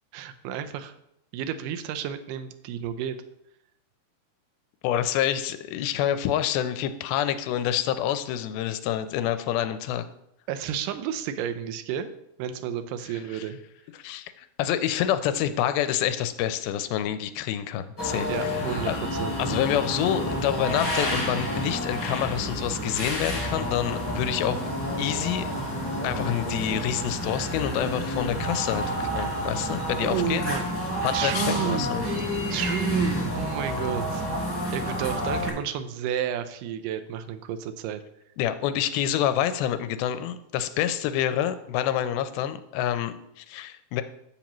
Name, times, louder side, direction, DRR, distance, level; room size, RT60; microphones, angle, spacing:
voice 1, 0.1-0.9 1.3-3.2 10.5-12.1 12.4-13.6 18.3-19.4 30.0-30.7 31.1-32.2 32.5-34.3 34.7-38.0, right 9 dB, 80° right, 9 dB, 2.0 m, -31 dB
voice 2, 4.8-10.1 13.3-13.4 14.0-18.6 18.9-19.0 19.4-24.7 25.0-25.5 26.0-30.4 31.0-32.0 38.4-44.0, left 10 dB, 85° left, 11 dB, 2.4 m, -27 dB
sound 1, 18.0-35.5, equal, 15° left, 1.6 m, -29 dB
10.0 x 7.2 x 3.0 m, 0.77 s
omnidirectional pair, 4.3 m